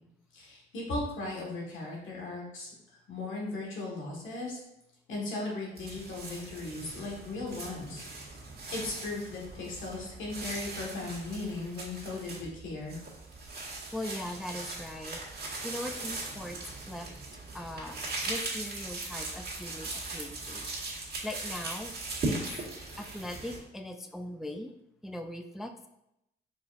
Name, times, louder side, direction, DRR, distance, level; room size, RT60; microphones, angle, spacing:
voice 1, 0.3-2.7 3.1-4.6 5.1-8.1 8.7-13.0, left 2 dB, 80° left, -2 dB, 1.6 m, -37 dB
sound 1, 5.8-23.6, right 2 dB, 55° right, 1.6 m, -39 dB
voice 2, 13.6-17.1 17.5-21.9 22.3-22.4 23.0-24.7 25.0-25.9, left 1 dB, ahead, 6 dB, 0.3 m, -40 dB
4.9 x 3.9 x 2.5 m, 0.82 s
cardioid pair, 90°, 20 cm